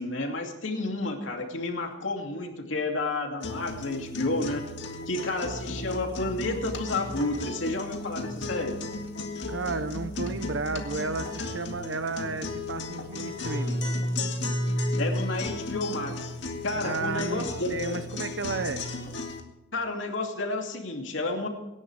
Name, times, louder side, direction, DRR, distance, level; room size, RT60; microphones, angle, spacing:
voice 1, 0.0-4.6 5.1-8.8 15.0-16.3 16.6-17.9 19.7-21.5, left 2 dB, 90° left, 2 dB, 2.6 m, -31 dB
sound 1, 3.4-19.4, left 1 dB, 65° left, 2.1 m, -33 dB
voice 2, 9.5-13.9 16.8-18.9, right 3 dB, 80° right, 11 dB, 0.8 m, -33 dB
25.0 x 11.0 x 3.4 m, 1.0 s
head